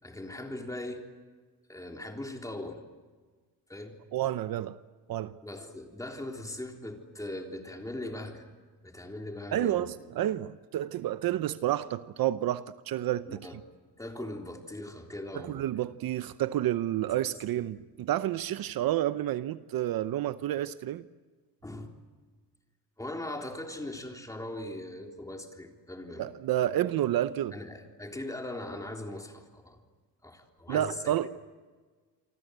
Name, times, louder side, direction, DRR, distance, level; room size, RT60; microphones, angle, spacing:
voice 1, 0.0-1.0 1.7-2.8 3.7-4.0 5.4-8.5 8.8-9.9 13.2-13.6 14.0-15.6 21.6-21.9 23.0-26.3 27.5-29.8 30.2-31.3, left 1 dB, 10° left, 3.6 m, -40 dB
voice 2, 4.1-4.8 5.1-5.4 9.5-13.4 15.3-21.0 26.2-27.5 30.7-31.3, right 12 dB, 60° right, 0.8 m, -30 dB
28.0 x 24.5 x 8.1 m
cardioid pair, 130°, 39 cm